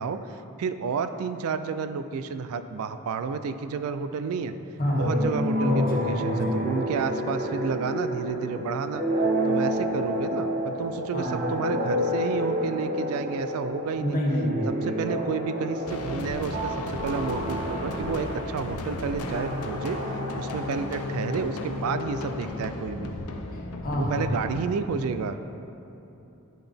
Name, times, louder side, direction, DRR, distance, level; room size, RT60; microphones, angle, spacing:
voice 1, 0.0-4.5 4.9-9.0 9.4-14.2 14.7-23.1 24.0-25.4, right 5 dB, 70° right, 10 dB, 0.3 m, -31 dB
voice 2, 4.8-5.1 5.6-6.8 11.1-11.4 14.0-14.8 23.5-24.4, equal, 40° left, -2 dB, 1.1 m, -27 dB
sound 1, 5.0-21.4, equal, 35° right, 0.7 m, -30 dB
sound 2, 15.9-24.6, left 2 dB, 75° left, 0.5 m, -35 dB
10.5 x 3.9 x 3.4 m, 2.9 s
head